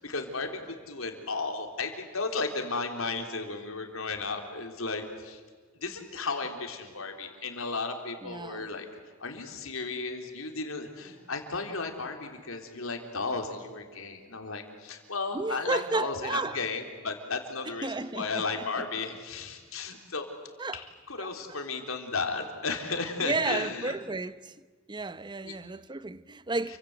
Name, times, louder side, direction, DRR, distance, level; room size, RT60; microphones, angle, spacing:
voice 1, 0.0-5.4 5.8-8.9 9.2-20.3 20.7-24.0 25.4-25.5, left 4 dB, 90° left, 3.8 m, -34 dB
voice 2, 8.2-8.7 15.3-16.6 17.6-18.9 20.6-20.8 21.2-21.6 23.2-24.6 24.9-26.8, right 3 dB, 20° right, 0.8 m, -33 dB
29.5 x 25.0 x 8.1 m
head